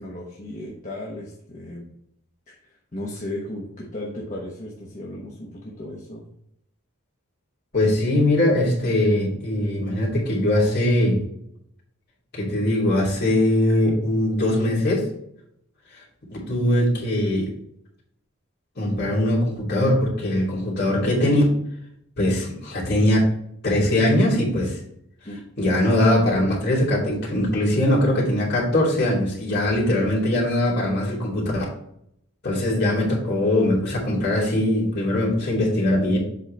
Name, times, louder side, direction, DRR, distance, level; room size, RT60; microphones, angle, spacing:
voice 1, 0.0-1.9 2.9-6.3 25.2-25.4, left 1 dB, 35° left, -3 dB, 1.1 m, -35 dB
voice 2, 7.7-11.2 12.3-15.1 16.3-17.5 18.8-21.4 22.2-23.3 23.6-24.8 25.6-31.6 32.4-36.2, left 1 dB, 50° left, -4 dB, 2.9 m, -21 dB
7.6 x 5.5 x 3.4 m, 0.72 s
head